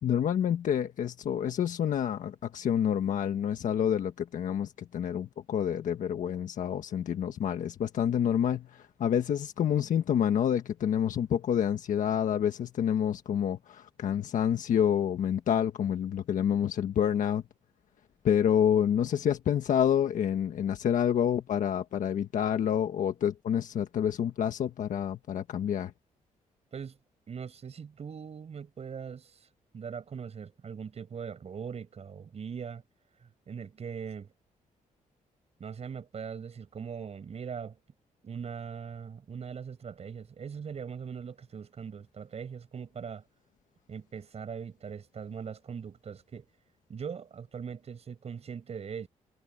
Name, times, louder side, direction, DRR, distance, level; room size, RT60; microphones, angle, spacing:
voice 1, 0.0-17.4 18.2-25.9, left 9 dB, 70° left, 1.5 m, -28 dB
voice 2, 27.3-29.4 29.7-32.8 33.2-34.3 35.6-37.8 38.2-43.2 43.9-46.5 46.9-49.1, right 6 dB, 50° right, 7.0 m, -40 dB
cardioid pair, 110°, 14 cm